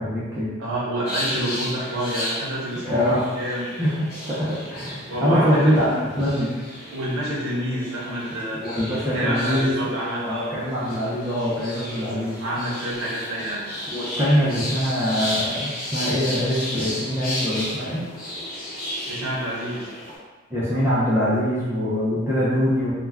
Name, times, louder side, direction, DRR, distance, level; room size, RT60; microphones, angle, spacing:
voice 1, 0.0-0.5 2.8-3.3 3.8-6.5 8.6-12.4 13.9-18.1 20.5-22.9, equal, 10° right, -10 dB, 0.4 m, -23 dB
voice 2, 0.6-3.8 5.1-5.7 6.9-8.9 9.1-10.5 12.4-13.6 19.1-19.9, right 1 dB, 85° right, -6 dB, 0.6 m, -28 dB
sound 1, 1.1-20.2, left 1 dB, 40° left, 0.8 m, -33 dB
2.3 x 2.1 x 3.3 m, 1.3 s
head